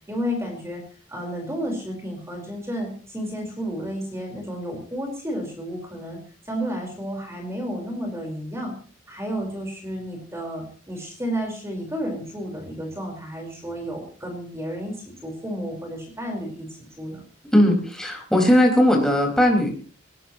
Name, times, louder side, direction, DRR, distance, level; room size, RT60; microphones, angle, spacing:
voice 1, 0.1-0.8 1.1-6.2 6.4-8.7 9.1-16.7 17.0-17.2, equal, 15° right, 2 dB, 4.5 m, -31 dB
voice 2, 17.5-19.7, equal, 5° left, 0 dB, 5.1 m, -18 dB
20.0 x 20.0 x 3.1 m, 0.40 s
head